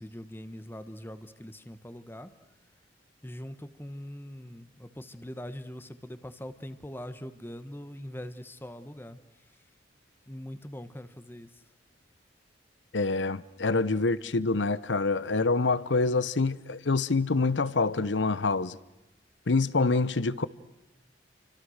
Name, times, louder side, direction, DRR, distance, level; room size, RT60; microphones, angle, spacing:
voice 1, 0.0-2.3 3.2-9.2 10.3-11.6, equal, 10° left, 1.2 m, -42 dB
voice 2, 12.9-18.8 19.5-20.5, left 3 dB, 80° left, 0.9 m, -26 dB
29.5 x 25.5 x 6.5 m
head